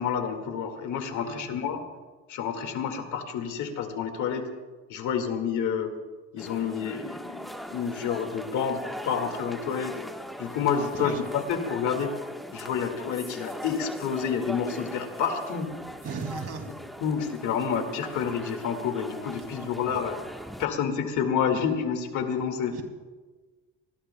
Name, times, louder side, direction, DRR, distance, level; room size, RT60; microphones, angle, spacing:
voice 1, 0.0-1.8 2.3-4.5 4.9-5.9 6.3-9.9 10.4-12.1 12.5-15.7 17.0-20.2 20.6-22.8, left 7 dB, 85° left, 6 dB, 2.1 m, -29 dB
voice 2, 1.2-1.6 11.0-11.2 16.0-16.7 19.5-20.0 22.7-22.8, right 5 dB, 55° right, 4 dB, 2.8 m, -37 dB
sound 1, 6.4-20.7, equal, ahead, 1.3 m, -40 dB
27.0 x 20.5 x 2.3 m, 1.3 s
cardioid pair, 80°, 29 cm